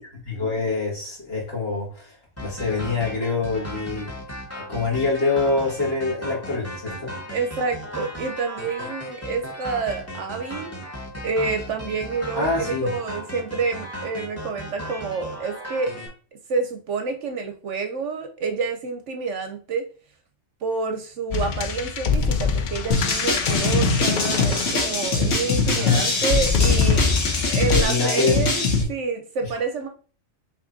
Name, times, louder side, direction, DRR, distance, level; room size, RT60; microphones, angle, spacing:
voice 1, 0.3-2.1 2.4-4.1 4.6-7.1 12.3-12.9 25.6-26.1 27.7-28.4, left 3 dB, 45° left, -4 dB, 2.1 m, -25 dB
sound 1, 2.4-16.1, equal, 10° left, 1.0 m, -36 dB
voice 2, 7.3-10.7 11.2-16.0 16.5-19.9 20.6-27.1 27.5-29.9, right 4 dB, 65° right, 5 dB, 0.9 m, -28 dB
sound 2, 21.3-25.4 26.2-27.8, left 5 dB, 80° left, 0.4 m, -24 dB
sound 3, 22.9-28.8, left 3 dB, 65° left, 1.4 m, -23 dB
5.8 x 3.2 x 2.6 m, 0.39 s
omnidirectional pair, 1.4 m